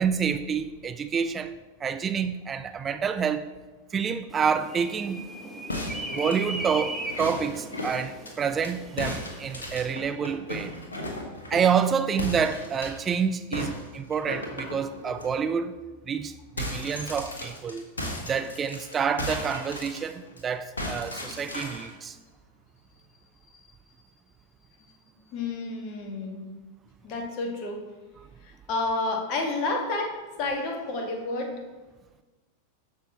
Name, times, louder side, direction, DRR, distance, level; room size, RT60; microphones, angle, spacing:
voice 1, 0.0-1.5 1.8-3.5 3.9-5.2 6.1-10.7 11.5-15.8 16.1-17.9 18.2-22.2, right 6 dB, 20° right, 0.4 m, -28 dB
sound 1, 4.3-9.9, right 1 dB, 5° right, 1.2 m, -38 dB
sound 2, 5.7-8.7 9.0-11.8 12.2-13.1 13.5-15.3 15.7-15.8 16.1-20.4 20.8-21.9, left 1 dB, 75° left, 1.5 m, -36 dB
voice 2, 24.8-26.5 27.0-27.8 28.4-31.6, left 2 dB, 40° left, 1.5 m, -31 dB
13.5 x 5.6 x 2.9 m
figure-of-eight pair, 90°, 0 cm